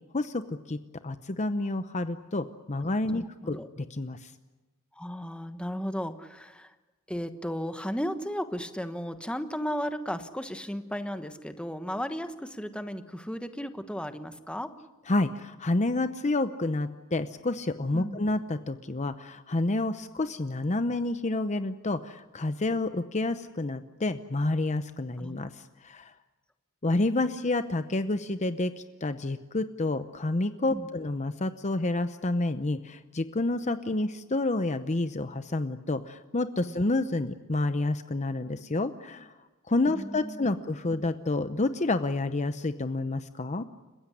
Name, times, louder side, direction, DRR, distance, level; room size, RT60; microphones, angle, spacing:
voice 1, 0.1-0.8 1.0-4.3 15.1-26.1 26.8-39.3 39.7-43.6, left 2 dB, 35° left, 10 dB, 0.8 m, -29 dB
voice 2, 3.1-3.7 4.9-6.7 7.1-14.7 17.9-18.3 22.7-22.8 25.2-25.4 30.7-30.9 36.7-36.8 39.9-40.6, equal, 5° left, 9 dB, 1.2 m, -35 dB
29.5 x 16.0 x 9.9 m, 1.1 s
head